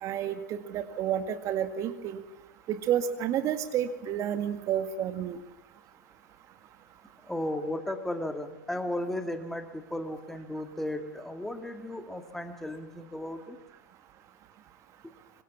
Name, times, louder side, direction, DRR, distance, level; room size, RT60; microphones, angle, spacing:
voice 1, 0.0-2.2 2.7-5.4, right 9 dB, 30° right, 9 dB, 1.8 m, -30 dB
voice 2, 7.3-13.6, left 1 dB, 5° left, 6 dB, 2.1 m, -35 dB
25.5 x 25.0 x 7.3 m, 0.91 s
figure-of-eight pair, 105°, 10 cm